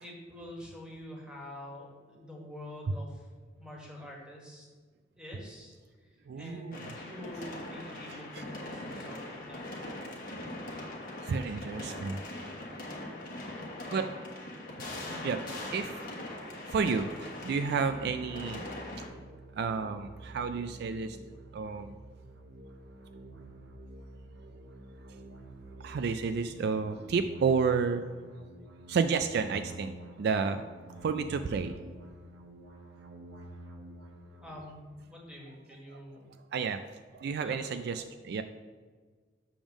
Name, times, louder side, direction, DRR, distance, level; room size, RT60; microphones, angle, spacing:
voice 1, 0.0-3.3 3.6-4.7 5.2-9.9 13.8-14.0 15.0-15.3 34.4-36.3 37.4-37.8, left 1 dB, 5° right, -3 dB, 1.5 m, -47 dB
voice 2, 6.3-6.8 8.1-8.4 11.2-12.2 13.9-14.1 15.2-15.4 15.7-16.0 16.6-18.7 19.0-19.1 19.6-21.2 21.5-21.9 25.8-28.1 28.9-30.6 31.0-31.8 35.9-36.0 36.5-36.8 37.1-38.4, right 5 dB, 60° right, 9 dB, 0.3 m, -31 dB
sound 1, 6.7-19.1, left 1 dB, 50° left, 1.2 m, -41 dB
sound 2, 17.5-34.6, right 1 dB, 75° right, 0.7 m, -49 dB
7.0 x 3.6 x 6.1 m, 1.5 s
head